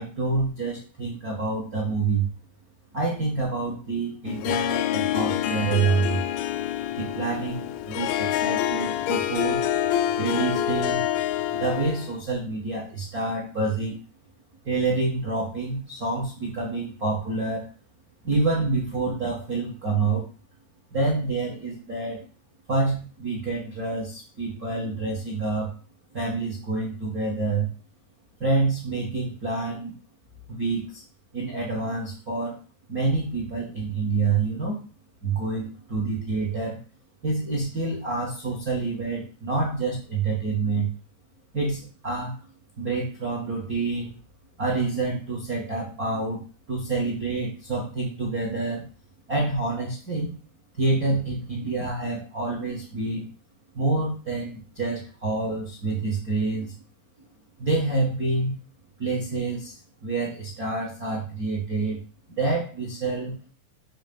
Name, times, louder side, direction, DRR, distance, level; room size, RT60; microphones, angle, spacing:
voice 1, 0.0-2.3 2.9-6.2 6.9-9.6 10.2-11.0 11.5-14.0 14.6-17.7 18.2-20.3 20.9-22.3 22.7-25.7 26.1-27.7 28.4-29.9 30.5-31.0 31.3-32.6 32.9-34.8 35.2-36.8 37.2-40.9 41.5-42.4 42.8-44.1 44.6-48.8 49.3-50.3 50.7-53.3 53.7-56.7 57.6-58.6 59.0-62.0 62.3-63.3, right 3 dB, 85° right, -2 dB, 0.8 m, -27 dB
Harp, 4.3-12.2, left 12 dB, 85° left, 2.0 m, -27 dB
8.8 x 3.2 x 5.3 m, 0.37 s
omnidirectional pair, 4.6 m